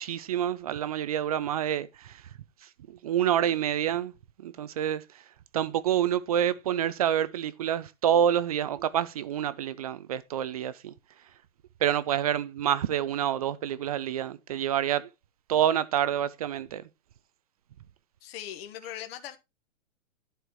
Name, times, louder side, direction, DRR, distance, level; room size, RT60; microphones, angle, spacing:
voice 1, 0.0-2.2 3.0-4.1 4.4-5.2 5.5-10.9 11.8-15.1 15.5-16.8, right 10 dB, 30° right, 0.4 m, -27 dB
voice 2, 18.2-19.4, left 11 dB, 45° left, 1.4 m, -40 dB
11.5 x 4.5 x 4.6 m
hypercardioid pair, 135°, 40 cm